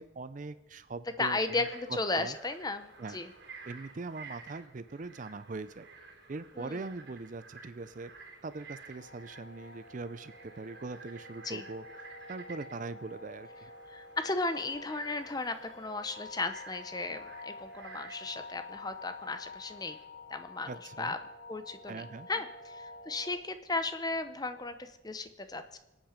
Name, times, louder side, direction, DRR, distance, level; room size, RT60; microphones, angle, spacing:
voice 1, 0.0-1.7 2.1-2.4 3.0-3.2 3.6-5.9 6.3-8.1 8.4-11.8 12.3-13.7 20.7-21.2 21.9-22.3, right 3 dB, 40° right, 14 dB, 0.5 m, -41 dB
voice 2, 1.2-3.3 6.6-6.8 11.4-11.6 13.9-20.0 20.3-20.7 21.0-21.2 21.5-25.8, left 3 dB, 20° left, 10 dB, 0.7 m, -35 dB
Frog, 1.3-20.0, right 4 dB, 60° right, 2.8 m, -53 dB
sound 1, 8.9-23.4, left 3 dB, 80° left, 1.8 m, -49 dB
26.5 x 8.9 x 5.1 m, 1.0 s
head